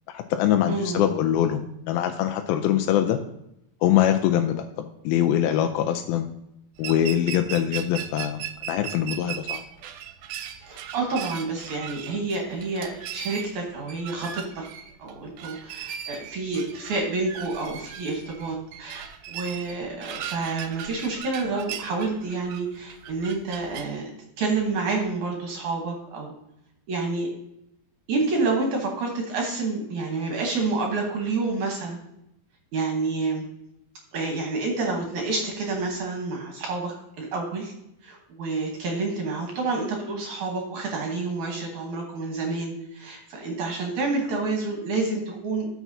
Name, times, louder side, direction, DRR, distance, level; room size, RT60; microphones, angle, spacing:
voice 1, 0.1-3.2 3.8-6.3 6.8-9.6, left 11 dB, 85° left, 6 dB, 2.4 m, -23 dB
voice 2, 0.7-1.0 10.7-14.6 15.0-24.1 24.4-26.3 26.9-27.3 28.1-32.0 32.7-33.4 34.1-37.7 38.0-45.7, right 3 dB, 65° right, 1 dB, 2.3 m, -28 dB
sound 1, 6.8-23.9, right 10 dB, 85° right, 2.5 m, -38 dB
13.5 x 5.9 x 2.7 m, 0.81 s
omnidirectional pair, 4.2 m